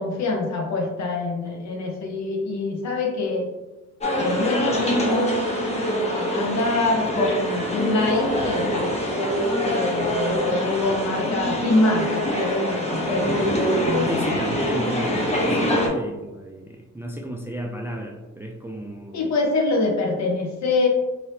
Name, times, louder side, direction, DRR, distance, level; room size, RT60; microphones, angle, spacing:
voice 1, 0.0-3.5 4.2-5.4 5.9-9.2 9.6-13.4 13.8-14.4 19.1-20.9, left 2 dB, 65° left, 1 dB, 0.9 m, -25 dB
sound 1, 4.0-15.9, equal, 20° left, 0.9 m, -24 dB
voice 2, 14.1-19.3, equal, 10° right, 2 dB, 0.3 m, -33 dB
3.2 x 2.8 x 2.7 m, 1.1 s
cardioid pair, 90°, 30 cm